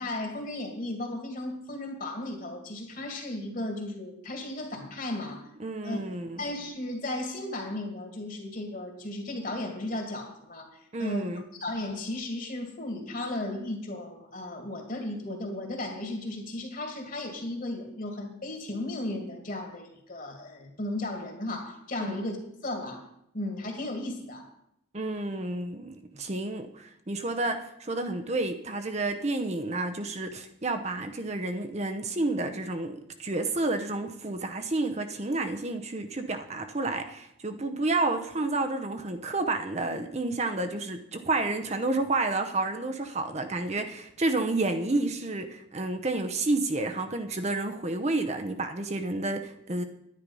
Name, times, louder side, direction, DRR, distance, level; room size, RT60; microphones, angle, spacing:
voice 1, 0.0-5.5 5.8-6.0 6.4-11.3 11.6-22.4 22.6-23.1 23.3-24.5, left 1 dB, 40° left, 4 dB, 2.3 m, -35 dB
voice 2, 5.6-6.4 10.9-11.4 22.0-22.2 24.9-49.8, right 2 dB, 30° right, 7 dB, 0.7 m, -30 dB
10.5 x 10.0 x 5.4 m, 0.77 s
head